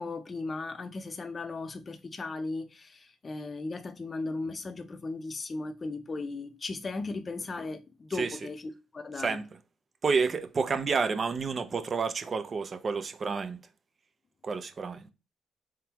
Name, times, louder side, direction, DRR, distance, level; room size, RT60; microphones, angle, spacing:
voice 1, 0.0-8.6 8.9-9.4, left 3 dB, 35° left, 0.7 m, -37 dB
voice 2, 10.0-13.6 14.4-15.1, right 5 dB, 40° right, 0.7 m, -30 dB
4.7 x 3.6 x 2.9 m
cardioid pair, 90°, 0 cm